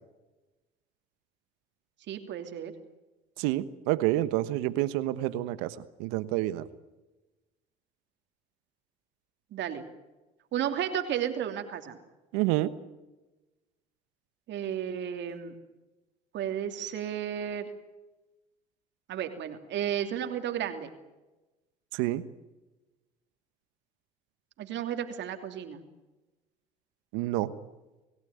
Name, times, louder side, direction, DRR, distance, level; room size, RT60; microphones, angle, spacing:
voice 1, 2.1-2.7 9.5-9.8 10.5-12.0 14.5-15.5 16.3-17.7 19.1-20.9 24.6-25.8, right 9 dB, 60° right, 6 dB, 2.9 m, -33 dB
voice 2, 3.4-6.7 12.3-12.7 21.9-22.2 27.1-27.5, right 16 dB, 75° right, 14 dB, 1.2 m, -28 dB
28.5 x 16.5 x 9.5 m, 1.1 s
hypercardioid pair, 65°, 21 cm